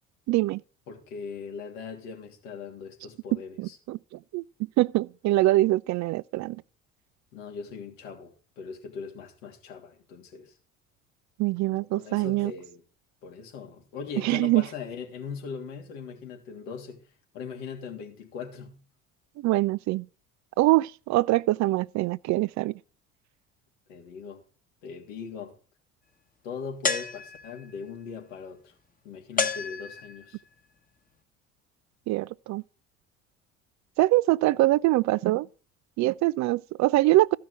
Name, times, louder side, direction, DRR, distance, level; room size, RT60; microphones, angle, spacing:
voice 1, 0.3-0.6 3.3-4.0 4.3-4.4 4.8-6.6 11.4-12.5 14.2-14.6 19.4-20.1 20.6-22.8 32.1-32.6 34.0-35.5 36.0-37.4, right 18 dB, 45° right, 0.5 m, -24 dB
voice 2, 0.9-3.8 7.3-10.5 11.7-12.8 13.2-17.1 17.3-18.8 23.9-24.4 24.8-25.6 26.4-28.7 29.0-30.4, left 6 dB, 75° left, 3.0 m, -40 dB
sound 1, 26.8-27.7 29.4-30.4, left 4 dB, 20° left, 1.4 m, -30 dB
14.0 x 5.8 x 7.9 m
hypercardioid pair, 65°, 39 cm